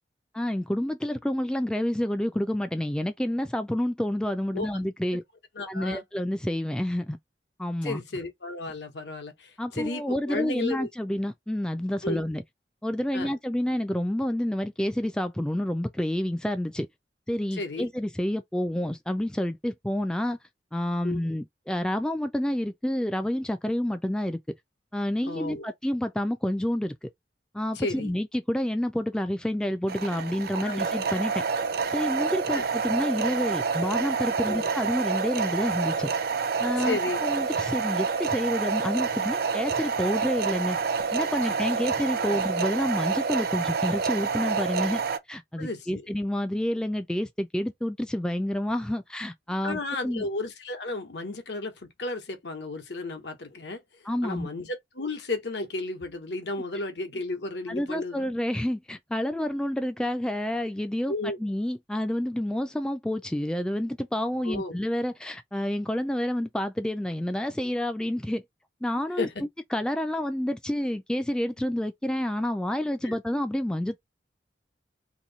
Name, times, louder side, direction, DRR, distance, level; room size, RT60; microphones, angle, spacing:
voice 1, 0.3-5.2 5.7-7.2 7.6-8.0 9.6-12.4 12.8-16.9 17.3-20.4 20.7-24.4 24.9-27.1 27.5-31.4 31.9-36.1 36.6-40.8 41.1-45.0 45.3-50.3 54.1-54.5 57.7-61.1 61.4-68.4 68.8-69.3 69.7-74.0, left 1 dB, 5° left, 0.3 m, -29 dB
voice 2, 5.5-6.0 7.8-10.9 12.0-12.2 13.1-13.3 17.5-17.9 21.0-21.2 25.2-25.7 27.7-28.1 30.6-30.8 32.5-32.7 34.4-34.7 36.8-37.2 41.8-41.9 42.1-42.4 45.6-46.0 49.6-53.8 54.2-58.3 61.1-61.4 64.4-64.8 69.2-69.3 73.0-73.2, left 2 dB, 75° left, 1.0 m, -33 dB
sound 1, 29.9-45.2, right 5 dB, 60° right, 0.5 m, -28 dB
2.9 x 2.6 x 3.9 m
head